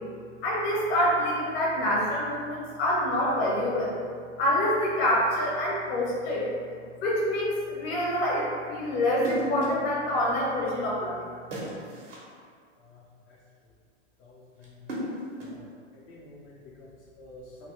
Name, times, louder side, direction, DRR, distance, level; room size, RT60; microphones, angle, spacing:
voice 1, 0.4-4.1 4.4-6.5 7.0-11.2, left 1 dB, 55° left, -5 dB, 1.1 m, -26 dB
sound 1, 9.2-9.9 11.5-12.3 14.6-15.7, equal, 85° right, 1.1 m, -35 dB
voice 2, 14.2-14.9 15.4-15.7 15.9-17.7, left 2 dB, 35° left, -5 dB, 0.4 m, -50 dB
3.2 x 2.0 x 2.8 m, 2.1 s
hypercardioid pair, 115°, 36 cm